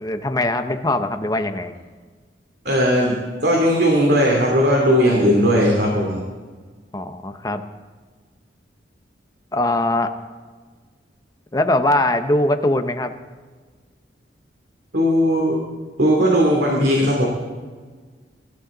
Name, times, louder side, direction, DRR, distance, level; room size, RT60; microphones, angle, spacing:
voice 1, 0.0-1.7 6.9-7.6 9.5-10.1 11.5-13.1, left 1 dB, 20° left, 7 dB, 0.8 m, -21 dB
voice 2, 2.6-6.2 14.9-15.6 16.0-17.3, equal, 60° right, -2 dB, 2.9 m, -17 dB
23.5 x 13.0 x 3.9 m, 1.5 s
head